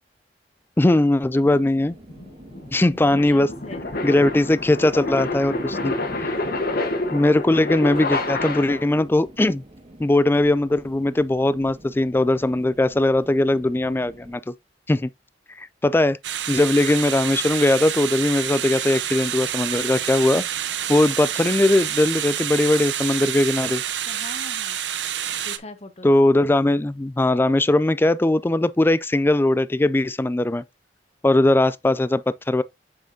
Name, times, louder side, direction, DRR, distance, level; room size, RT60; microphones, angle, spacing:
voice 1, 0.8-2.0 2.7-3.5 4.0-6.3 7.1-9.6 10.0-14.5 14.9-15.1 15.6-16.2 16.5-20.4 20.9-23.8 26.0-30.6 31.2-32.6, left 1 dB, 15° left, 0.3 m, -20 dB
sound 1, 1.3-14.4, right 1 dB, 30° right, 1.7 m, -47 dB
sound 2, 1.4-9.0, left 2 dB, 55° left, 1.3 m, -28 dB
voice 2, 3.2-3.9 24.0-24.8 25.4-26.1, left 2 dB, 35° left, 1.0 m, -41 dB
sound 3, 16.2-25.6, right 10 dB, 90° right, 0.7 m, -28 dB
7.5 x 5.7 x 2.7 m
head